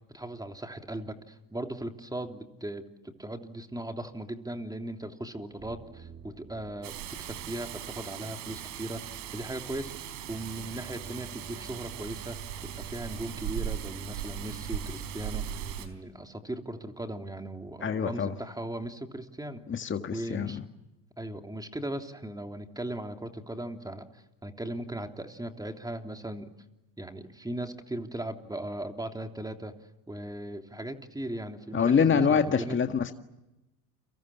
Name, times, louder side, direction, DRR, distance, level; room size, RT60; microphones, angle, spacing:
voice 1, 0.1-12.4 12.6-20.6 21.2-26.5 27.0-29.7 30.1-32.8, right 1 dB, 10° right, 5 dB, 3.3 m, -38 dB
sound 1, 5.6-15.7, right 4 dB, 25° right, 2.8 m, -46 dB
Rain, 6.8-15.9, right 11 dB, 70° right, 4.3 m, -39 dB
voice 2, 17.8-18.3 19.7-20.6 31.7-33.1, left 6 dB, 25° left, 7 dB, 1.8 m, -25 dB
30.0 x 25.0 x 7.3 m, 0.97 s
hypercardioid pair, 80°, 49 cm